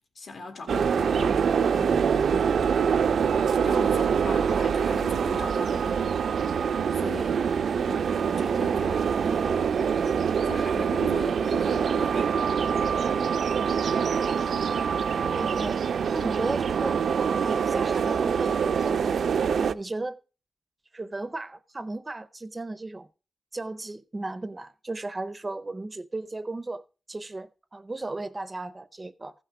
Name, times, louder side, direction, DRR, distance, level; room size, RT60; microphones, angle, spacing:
voice 1, 0.1-2.4 3.6-6.2 6.9-9.3 9.8-10.1 10.4-12.4, left 4 dB, 70° left, 2.2 m, -40 dB
sound 1, 0.7-19.7, right 6 dB, 75° right, 0.4 m, -25 dB
voice 2, 9.2-9.6 15.2-15.8 16.1-17.0 17.4-19.1 19.6-20.2 20.9-23.1 23.5-26.8 27.1-29.3, right 2 dB, 20° right, 0.5 m, -35 dB
15.0 x 5.9 x 4.8 m
wide cardioid pair, 165°, 0 cm